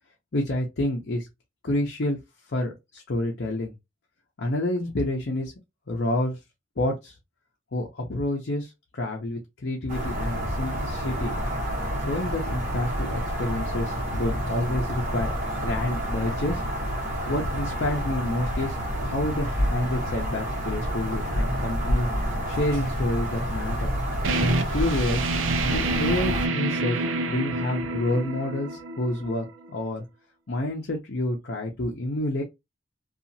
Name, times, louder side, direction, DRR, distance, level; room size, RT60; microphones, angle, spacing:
voice 1, 0.3-1.3 1.6-2.2 2.5-3.7 4.4-5.5 5.9-6.4 6.8-7.2 7.7-11.3 12.0-16.6 17.3-22.1 22.5-23.9 24.4-25.3 25.7-27.0 27.2-30.0 30.5-32.4, left 1 dB, 55° left, 0.6 m, -28 dB
sound 1, 9.9-26.5, equal, 45° right, 1.1 m, -28 dB
sound 2, 24.2-29.7, right 3 dB, 75° right, 0.5 m, -28 dB
2.8 x 2.4 x 2.6 m
head